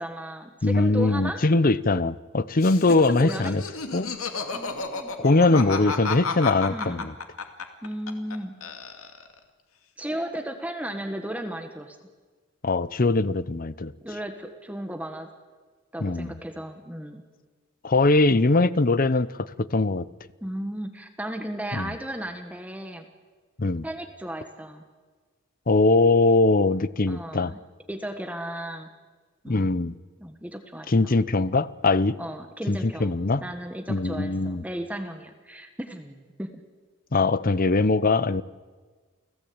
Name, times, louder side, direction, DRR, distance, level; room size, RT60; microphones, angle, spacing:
voice 1, 0.0-1.4 3.0-3.5 4.5-6.0 6.7-7.1 7.8-8.5 10.0-12.0 14.0-15.3 15.9-17.2 20.4-23.0 23.8-24.8 27.1-27.6 27.9-28.9 29.4-29.8 30.2-31.1 32.2-36.5, right 1 dB, 5° right, 6 dB, 1.6 m, -35 dB
voice 2, 0.6-3.6 3.9-4.1 5.2-7.1 12.6-13.9 16.0-16.3 17.8-19.3 19.6-20.0 21.7-21.9 23.6-23.8 25.7-27.5 29.5-29.9 30.9-32.2 32.7-33.4 33.9-34.6 37.1-38.4, left 3 dB, 40° left, 17 dB, 0.8 m, -21 dB
Laughter, 2.6-8.4 8.6-9.4, left 4 dB, 85° left, 2.4 m, -32 dB
29.0 x 17.0 x 8.8 m, 1.4 s
head